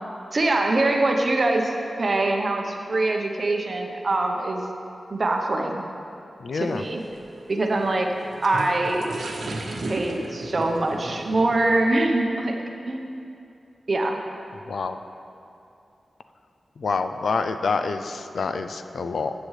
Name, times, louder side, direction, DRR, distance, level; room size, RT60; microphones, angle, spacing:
voice 1, 0.3-1.7 2.0-4.6 5.1-5.8 6.5-7.0 7.5-8.1 8.4-9.1 9.9-12.6 12.9-13.1 13.9-14.2, right 2 dB, 40° right, 2 dB, 0.8 m, -23 dB
voice 2, 6.4-6.8 14.5-15.0 16.8-19.3, left 4 dB, 70° left, 8 dB, 0.4 m, -27 dB
sound 1, 6.5-11.9, right 2 dB, 80° right, 1.0 m, -36 dB
14.0 x 8.4 x 3.2 m, 2.7 s
wide cardioid pair, 155°, 0 cm